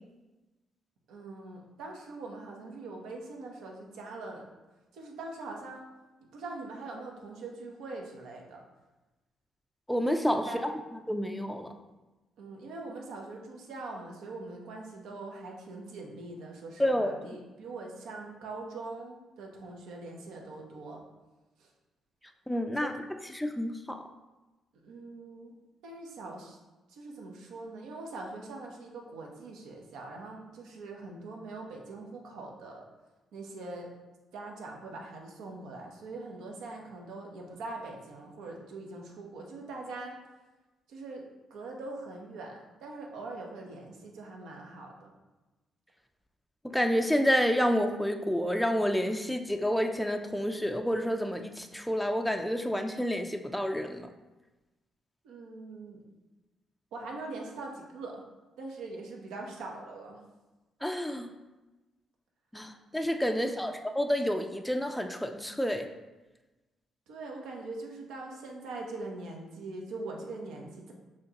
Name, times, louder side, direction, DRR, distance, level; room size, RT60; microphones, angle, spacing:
voice 1, 1.1-4.5 4.9-5.8 6.3-8.6 10.4-10.6 12.4-21.0 21.6-21.7 22.8-22.9 24.8-25.5 25.8-26.6 26.9-32.8 33.3-33.9 34.3-40.1 40.9-45.1 55.2-56.0 56.9-58.2 58.6-60.2 63.2-63.7 67.1-70.9, right 2 dB, 85° right, 0 dB, 0.8 m, -42 dB
voice 2, 9.9-10.7 11.1-11.7 16.8-17.2 22.5-22.9 23.3-24.0 46.6-54.1 60.8-61.3 62.5-65.9, equal, 5° left, 4 dB, 0.3 m, -29 dB
6.3 x 2.9 x 2.9 m, 1.1 s
cardioid pair, 90°, 0 cm